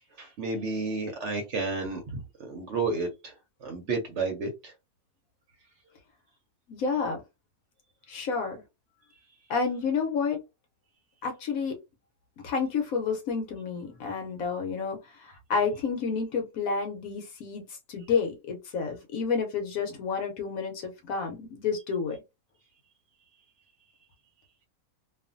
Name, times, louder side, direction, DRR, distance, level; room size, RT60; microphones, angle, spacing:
voice 1, 0.2-3.3 3.6-4.7, right 3 dB, 60° right, 0.9 m, -31 dB
voice 2, 6.7-7.2 8.1-8.6 9.5-10.4 11.2-11.8 12.4-22.2, left 5 dB, 70° left, 1.1 m, -30 dB
2.6 x 2.4 x 2.5 m
omnidirectional pair, 1.6 m